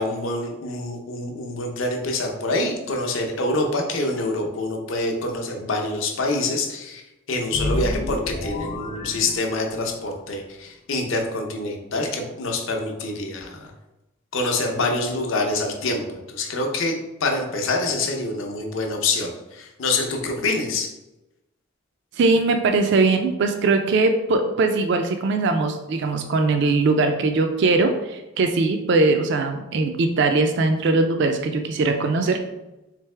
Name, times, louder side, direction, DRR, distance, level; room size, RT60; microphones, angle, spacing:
voice 1, 0.0-7.0 7.3-13.7 14.3-17.0 17.2-20.9, left 2 dB, 65° left, 3 dB, 0.6 m, -26 dB
sound 1, 7.5-10.0, left 1 dB, 30° left, 0.3 m, -30 dB
voice 2, 22.2-32.4, right 3 dB, 55° right, 6 dB, 0.3 m, -20 dB
3.6 x 3.3 x 3.2 m, 0.97 s
head